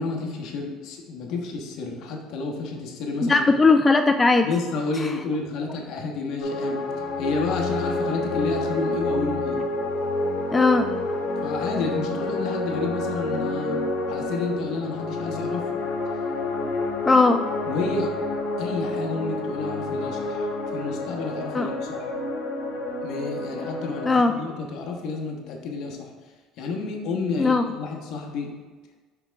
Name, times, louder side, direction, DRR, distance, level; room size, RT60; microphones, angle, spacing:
voice 1, 0.0-3.5 4.4-6.8 7.2-9.6 11.4-13.8 14.1-15.6 17.7-18.1 18.6-20.5 20.7-22.1 23.0-26.1 26.6-28.5, left 3 dB, 65° left, 1 dB, 1.2 m, -30 dB
voice 2, 3.3-4.5 10.5-10.9 17.1-17.4 21.5-21.7 24.1-24.3 27.4-27.6, left 3 dB, 20° left, 7 dB, 0.3 m, -18 dB
sound 1, 6.4-24.1, left 2 dB, 85° left, 1.1 m, -28 dB
5.9 x 5.7 x 3.5 m, 1.4 s
supercardioid pair, 105°, 0 cm